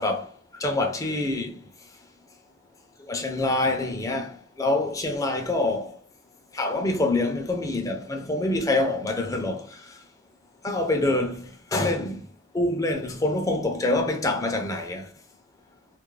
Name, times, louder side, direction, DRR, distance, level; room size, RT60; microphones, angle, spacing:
voice 1, 0.0-1.6 3.1-5.9 6.5-9.9 10.6-12.3 12.5-15.1, left 2 dB, 20° left, 0.4 m, -26 dB
2.4 x 2.0 x 3.0 m
head